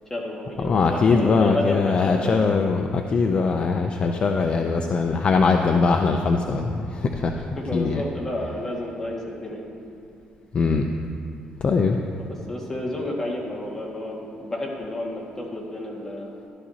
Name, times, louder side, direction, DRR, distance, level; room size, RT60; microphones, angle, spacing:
voice 1, 0.1-2.6 4.0-4.2 7.6-9.6 12.3-16.3, left 1 dB, 15° left, -3 dB, 1.8 m, -31 dB
voice 2, 0.6-7.5 7.7-8.0 10.5-10.9 11.6-12.0, left 4 dB, 40° left, 4 dB, 0.5 m, -21 dB
13.0 x 12.0 x 2.8 m, 2.5 s
cardioid pair, 140°, 3 cm